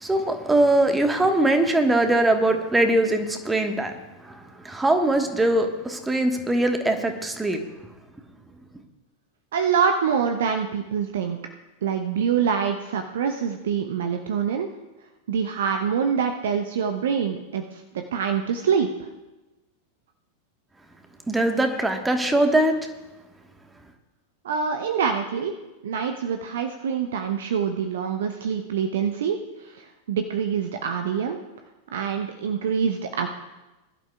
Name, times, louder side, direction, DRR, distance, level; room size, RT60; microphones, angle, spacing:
voice 1, 0.0-3.9 4.2-7.6 21.3-22.8, right 1 dB, 10° right, 5 dB, 1.3 m, -21 dB
voice 2, 9.5-11.4 11.8-14.7 15.3-19.1 24.4-25.5 25.8-29.8 30.1-31.4 31.9-33.3, right 7 dB, 60° right, 6 dB, 0.7 m, -25 dB
21.0 x 11.5 x 2.3 m, 1.1 s
figure-of-eight pair, 90°, 0 cm